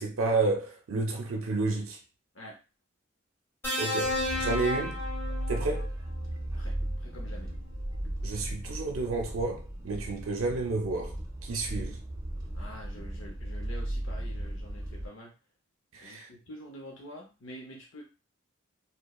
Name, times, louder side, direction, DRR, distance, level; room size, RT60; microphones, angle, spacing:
voice 1, 0.0-2.0 3.8-5.0 5.5-5.9 8.2-11.1 11.4-12.0 15.9-16.3, right 3 dB, 85° right, 0.5 m, -31 dB
sound 1, 3.6-5.9 7.2-7.4, left 1 dB, 10° left, 1.0 m, -32 dB
sound 2, 4.0-15.1, right 1 dB, 20° right, 0.4 m, -36 dB
voice 2, 6.5-7.5 12.5-15.3 16.0-18.0, equal, 70° left, 0.6 m, -47 dB
2.9 x 2.0 x 2.3 m
head